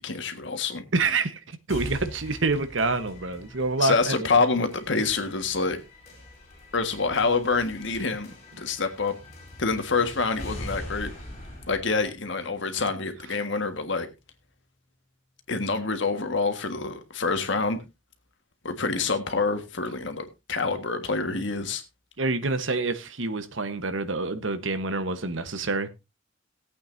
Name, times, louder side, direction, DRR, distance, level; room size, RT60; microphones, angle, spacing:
voice 1, 0.0-0.8 3.8-5.8 6.7-9.1 9.6-11.1 11.7-14.1 15.5-17.8 18.6-21.8, left 4 dB, 65° left, 1.6 m, -26 dB
voice 2, 0.9-4.3 22.2-25.9, right 3 dB, 70° right, 1.2 m, -27 dB
sound 1, 1.7-13.6, left 1 dB, 35° left, 4.2 m, -43 dB
18.0 x 8.5 x 2.7 m
head